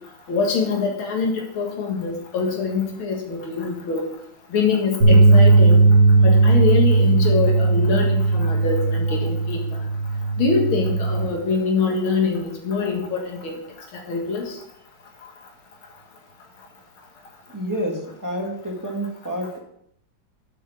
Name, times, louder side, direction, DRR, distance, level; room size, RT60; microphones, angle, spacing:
voice 1, 0.3-4.0 4.5-5.9 6.2-9.6 10.4-13.6 14.1-14.4, left 4 dB, 85° left, 0 dB, 2.6 m, -24 dB
sound 1, 5.0-11.3, right 3 dB, 60° right, 2.6 m, -17 dB
voice 2, 17.5-19.6, equal, 10° right, 0 dB, 1.3 m, -29 dB
8.4 x 6.4 x 4.8 m, 0.72 s
omnidirectional pair, 2.2 m